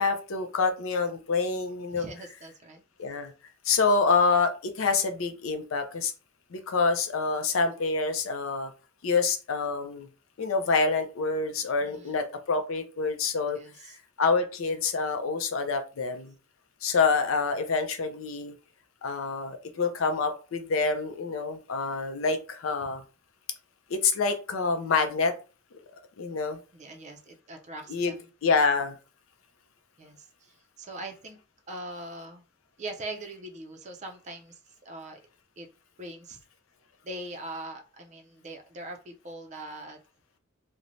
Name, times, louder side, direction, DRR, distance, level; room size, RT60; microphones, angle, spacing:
voice 1, 0.0-2.0 3.0-3.3 3.6-6.1 6.5-8.7 9.0-10.1 10.4-13.6 14.2-16.3 16.8-18.5 19.0-23.0 23.9-25.3 26.2-26.6 27.9-28.1 28.4-29.0, left 4 dB, 75° left, 7 dB, 0.5 m, -27 dB
voice 2, 1.9-2.8 11.8-12.2 13.5-13.9 26.7-28.1 30.0-31.4 31.7-32.4 32.8-35.2 35.6-35.7 36.0-36.4 37.0-40.0, right 2 dB, 35° right, 4 dB, 0.4 m, -41 dB
3.1 x 2.1 x 2.5 m, 0.34 s
head